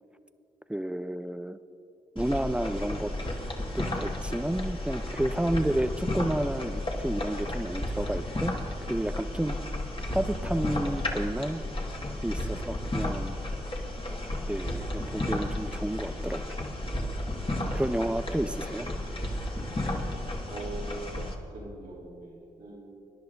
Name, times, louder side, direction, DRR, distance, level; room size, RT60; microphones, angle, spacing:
voice 1, 0.7-1.6 2.2-3.1 3.7-8.5 8.9-9.6 10.1-11.6 12.2-13.4 14.5-16.4 17.7-18.9, right 1 dB, 5° right, 12 dB, 0.6 m, -30 dB
sound 1, 2.2-21.3, left 1 dB, 35° left, 1.8 m, -33 dB
voice 2, 20.5-21.3 21.5-22.9, right 3 dB, 90° right, -6 dB, 2.7 m, -43 dB
21.5 x 10.5 x 2.6 m, 2.7 s
supercardioid pair, 40°, 15 cm